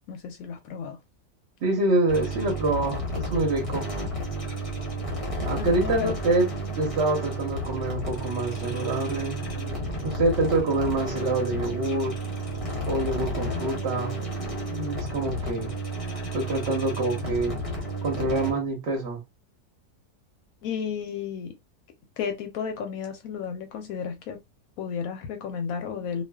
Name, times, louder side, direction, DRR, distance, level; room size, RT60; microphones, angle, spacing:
voice 1, 0.1-1.0 5.6-6.2 20.6-21.5 22.2-24.4 24.8-26.2, left 7 dB, 70° left, 0.9 m, -33 dB
voice 2, 1.6-3.9 5.4-6.5 6.8-12.1 12.9-14.2 14.7-15.7 16.3-17.6 18.0-19.2, right 2 dB, 50° right, 1.0 m, -26 dB
sound 1, 2.1-18.5, right 1 dB, 30° left, 0.7 m, -32 dB
2.4 x 2.4 x 2.2 m
omnidirectional pair, 1.7 m